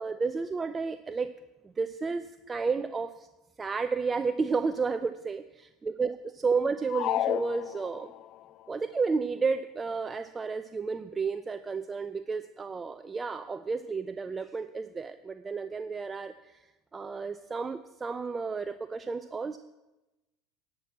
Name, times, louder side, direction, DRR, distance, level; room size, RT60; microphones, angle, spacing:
voice 1, 0.0-1.3 1.6-3.3 3.6-8.1 8.7-16.7 16.9-19.6, right 4 dB, 25° right, 11 dB, 0.5 m, -32 dB
sound 1, 6.9-8.3, left 13 dB, 55° left, 0.3 m, -31 dB
10.0 x 6.1 x 8.5 m, 1.0 s
hypercardioid pair, 80°, 0 cm